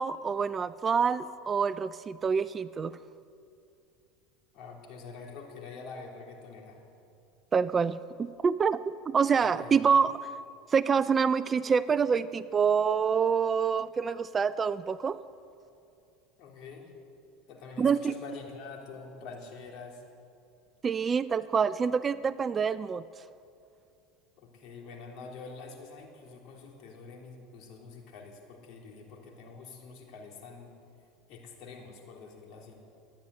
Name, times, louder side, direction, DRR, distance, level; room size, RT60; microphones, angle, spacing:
voice 1, 0.0-2.9 7.5-10.2 10.7-15.2 17.8-18.1 20.8-23.0, right 6 dB, 25° right, 15 dB, 0.4 m, -26 dB
voice 2, 4.5-6.8 9.4-9.8 16.4-16.9 17.5-20.0 24.4-30.7 31.3-32.8, left 4 dB, 60° left, 0 dB, 3.3 m, -46 dB
13.5 x 10.0 x 9.5 m, 2.5 s
supercardioid pair, 110°, 0 cm